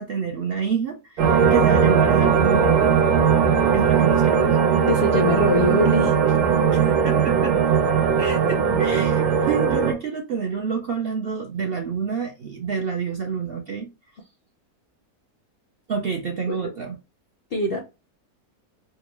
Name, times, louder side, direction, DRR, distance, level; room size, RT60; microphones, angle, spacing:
voice 1, 0.0-3.0 3.7-4.6 6.7-7.6 8.2-13.9 15.9-17.0, right 6 dB, 60° right, 0.6 m, -28 dB
sound 1, 1.2-9.9, right 7 dB, 85° right, 1.3 m, -19 dB
voice 2, 4.9-6.4 16.5-16.7 17.5-17.8, equal, 60° left, 0.6 m, -23 dB
3.8 x 2.3 x 3.0 m
omnidirectional pair, 1.6 m